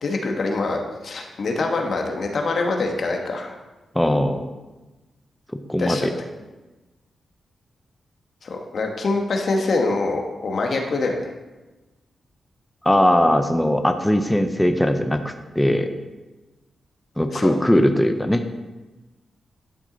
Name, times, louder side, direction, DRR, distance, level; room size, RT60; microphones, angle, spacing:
voice 1, 0.0-3.5 5.8-6.1 8.4-11.2 17.3-17.5, left 3 dB, 65° left, 2 dB, 1.4 m, -24 dB
voice 2, 3.9-4.5 5.7-6.1 12.8-15.9 17.2-18.4, left 1 dB, 10° left, 7 dB, 0.8 m, -19 dB
11.5 x 6.1 x 4.0 m, 1.1 s
cardioid pair, 60°, 0 cm